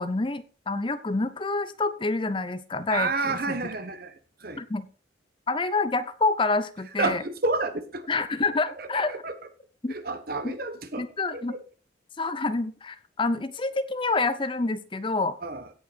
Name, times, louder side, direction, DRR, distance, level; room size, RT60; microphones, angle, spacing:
voice 1, 0.0-3.4 4.6-4.8 5.5-7.2 8.1-9.1 9.8-9.9 10.4-10.6 11.0-11.5 12.2-15.4, left 3 dB, 25° left, 13 dB, 0.6 m, -27 dB
voice 2, 2.9-4.6 7.0-8.1 8.8-9.5 9.9-11.1 11.3-11.6 15.4-15.7, right 3 dB, 50° right, 10 dB, 1.2 m, -30 dB
16.5 x 5.6 x 4.3 m, 0.37 s
head